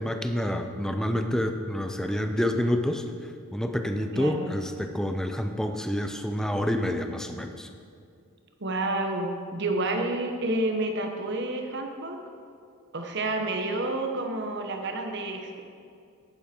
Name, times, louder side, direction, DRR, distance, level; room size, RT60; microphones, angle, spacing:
voice 1, 0.0-3.0 3.5-7.7, equal, 5° left, 6 dB, 0.5 m, -28 dB
voice 2, 4.1-4.5 8.6-12.2 12.9-15.6, right 2 dB, 55° right, 4 dB, 1.2 m, -29 dB
10.5 x 10.0 x 4.5 m, 2.4 s
head